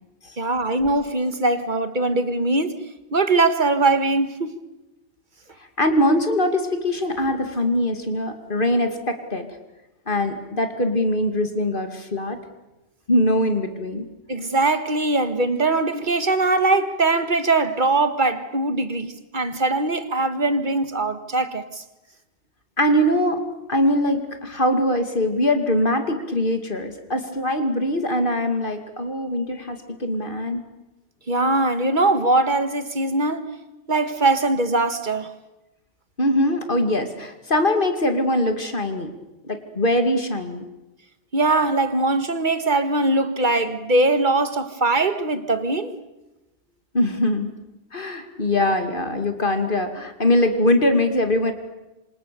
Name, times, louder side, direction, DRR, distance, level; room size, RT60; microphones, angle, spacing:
voice 1, 0.4-2.8 3.1-4.5 14.3-21.8 31.3-33.5 33.9-35.3 41.3-45.9, right 2 dB, 45° right, 1.8 m, -21 dB
voice 2, 5.8-9.5 10.1-12.4 13.1-14.0 22.8-23.4 23.7-30.6 36.2-39.1 39.4-40.6 46.9-47.5 47.9-51.5, left 1 dB, 50° left, 2.6 m, -22 dB
27.0 x 26.5 x 7.0 m
omnidirectional pair, 1.1 m